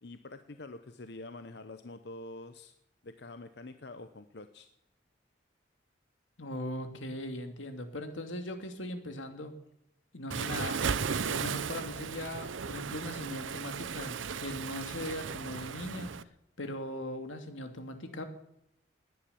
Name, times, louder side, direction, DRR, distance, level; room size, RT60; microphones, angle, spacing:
voice 1, 0.0-2.7 3.0-4.7, left 2 dB, 60° left, 9 dB, 0.8 m, -46 dB
voice 2, 6.4-9.5 10.1-10.9 11.3-16.1 16.6-18.2, left 1 dB, 85° left, 7 dB, 2.4 m, -39 dB
Waves surf, 10.3-16.2, right 6 dB, 85° right, 0.7 m, -35 dB
19.0 x 10.5 x 7.0 m, 0.81 s
head